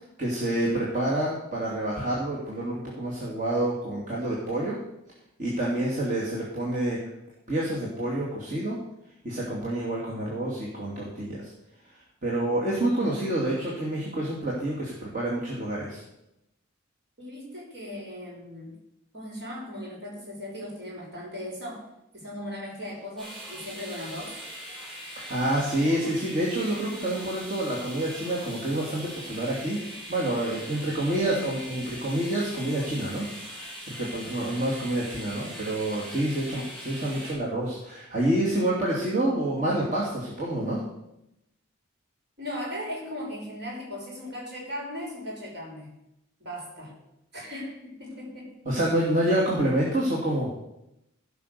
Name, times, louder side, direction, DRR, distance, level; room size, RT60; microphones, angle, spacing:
voice 1, 0.2-4.8 5.4-7.0 7.5-8.8 9.2-11.4 12.2-16.0 25.3-29.8 30.1-40.8 48.7-50.5, right 1 dB, 40° right, -5 dB, 2.6 m, -28 dB
voice 2, 5.7-6.0 17.2-18.8 19.1-21.8 22.1-24.4 34.1-34.4 42.4-45.9 46.4-47.0 47.3-49.0, left 1 dB, 55° right, -3 dB, 5.9 m, -38 dB
sound 1, 23.2-37.3, equal, ahead, 6.0 m, -41 dB
16.0 x 6.0 x 6.9 m, 0.85 s
head